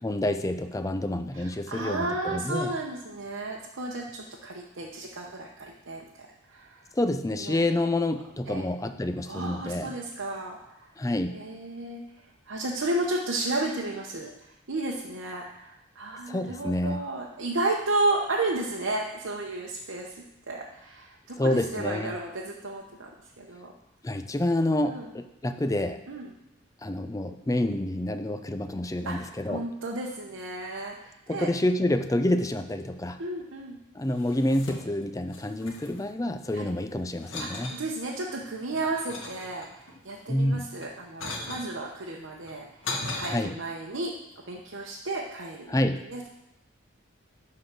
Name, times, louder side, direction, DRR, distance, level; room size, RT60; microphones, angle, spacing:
voice 1, 0.0-2.7 6.9-9.9 11.0-11.4 16.3-17.1 21.4-22.1 24.0-26.0 26.8-29.6 31.3-33.2 33.9-37.7 40.3-40.7 43.3-43.6 45.7-46.1, left 1 dB, 15° left, 8 dB, 0.4 m, -28 dB
voice 2, 1.3-6.9 7.4-7.6 8.5-8.7 9.3-10.9 11.3-14.3 14.7-23.1 23.4-23.7 24.8-25.1 26.1-26.3 29.0-31.5 33.2-33.8 36.5-36.7 37.4-42.7 43.1-44.1 44.5-45.7 46.0-46.3, right 2 dB, 75° right, -2 dB, 0.9 m, -33 dB
sound 1, 34.1-35.1 35.3-36.7 37.2-37.8 38.4-39.9 40.7-41.7 42.4-43.3, left 2 dB, 75° left, 1.5 m, -38 dB
11.5 x 3.9 x 6.0 m, 0.89 s
head